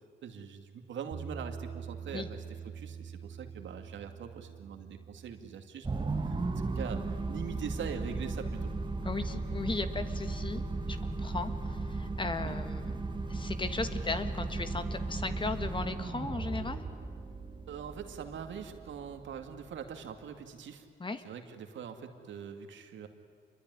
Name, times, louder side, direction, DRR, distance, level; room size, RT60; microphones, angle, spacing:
voice 1, 0.2-2.4 2.7-6.4 6.8-8.7 12.4-12.6 17.7-20.9 21.2-23.1, right 7 dB, 70° right, 6 dB, 2.5 m, -43 dB
Bass guitar, 1.1-7.4, right 6 dB, 55° right, 3.7 m, -46 dB
sound 1, 5.8-20.3, right 3 dB, 25° right, 2.0 m, -36 dB
voice 2, 9.0-13.0 13.3-16.8 21.0-21.2, left 3 dB, 25° left, 9 dB, 1.8 m, -36 dB
26.5 x 22.5 x 9.8 m, 2.2 s
cardioid pair, 90°, 20 cm